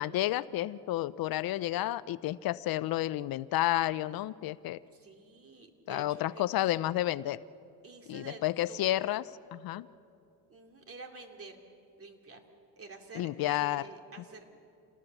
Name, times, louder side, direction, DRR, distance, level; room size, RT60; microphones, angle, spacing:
voice 1, 0.0-4.8 5.9-7.4 8.1-9.2 9.5-9.9 13.1-13.9, left 15 dB, 65° left, 17 dB, 0.6 m, -31 dB
voice 2, 4.9-6.5 7.8-8.4 8.7-9.1 10.5-11.6 12.0-12.4 12.8-14.5, right 3 dB, 35° right, 3 dB, 3.1 m, -49 dB
28.0 x 18.5 x 7.1 m, 2.6 s
cardioid pair, 100°, 38 cm